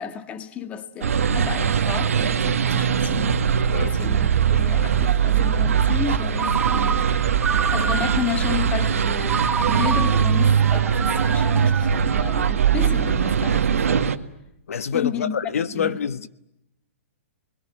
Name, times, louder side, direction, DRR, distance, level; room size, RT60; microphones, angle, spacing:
voice 1, 0.0-3.4 3.8-7.1 7.7-14.1 14.9-15.4 15.7-16.0, left 8 dB, 15° left, 1.8 m, -32 dB
sound 1, 1.0-14.2, right 7 dB, 90° right, 1.9 m, -21 dB
Ringtone, 6.4-8.4 9.3-12.6, right 6 dB, 10° right, 1.0 m, -28 dB
voice 2, 14.7-16.3, left 7 dB, 85° left, 1.4 m, -26 dB
29.0 x 21.5 x 9.2 m
hypercardioid pair, 160°, 7 cm